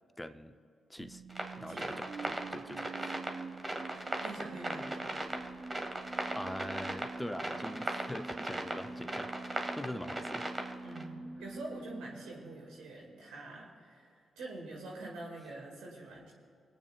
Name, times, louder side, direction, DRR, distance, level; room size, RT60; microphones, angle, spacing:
voice 1, 0.2-0.6 0.9-1.2 1.6-3.1 6.3-9.3 9.7-10.5, left 1 dB, 10° left, 9 dB, 0.7 m, -43 dB
sound 1, 1.0-13.1, right 3 dB, 50° right, 0.6 m, -46 dB
sound 2, 1.3-11.0, right 1 dB, 25° right, 1.6 m, -38 dB
voice 2, 3.9-5.1 10.0-10.2 10.8-16.3, right 2 dB, 85° right, -2 dB, 2.2 m, -46 dB
25.0 x 8.8 x 2.4 m, 2.5 s
hypercardioid pair, 40°, 0 cm